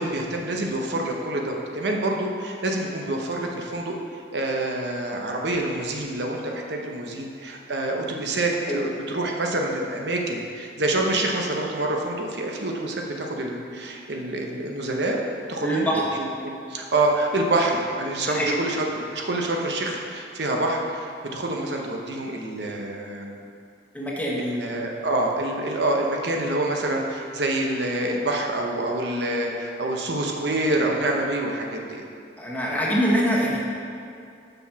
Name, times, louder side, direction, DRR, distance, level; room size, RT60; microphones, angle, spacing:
voice 1, 0.0-4.0 4.3-15.2 15.5-23.4 24.4-32.0, right 2 dB, 70° right, 0 dB, 0.9 m, -27 dB
voice 2, 15.6-16.0 18.3-18.6 23.9-24.6 32.4-33.6, equal, 10° left, -4 dB, 1.2 m, -24 dB
6.9 x 6.1 x 5.7 m, 2.4 s
head